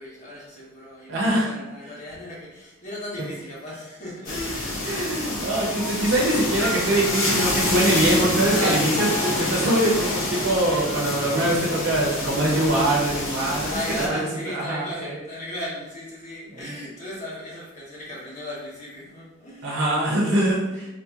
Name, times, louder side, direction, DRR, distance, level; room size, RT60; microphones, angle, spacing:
voice 1, 0.0-5.4 7.9-8.1 8.5-9.5 10.7-11.1 13.7-19.8, equal, 35° left, -6 dB, 1.2 m, -36 dB
voice 2, 1.1-1.5 4.8-13.7 14.1-15.2 19.6-20.9, right 1 dB, 60° right, -4 dB, 0.7 m, -23 dB
sound 1, 4.2-14.1, left 2 dB, 70° left, 0.8 m, -27 dB
sound 2, 5.8-14.6, left 2 dB, 15° left, 0.6 m, -40 dB
4.0 x 2.8 x 2.4 m, 0.97 s
head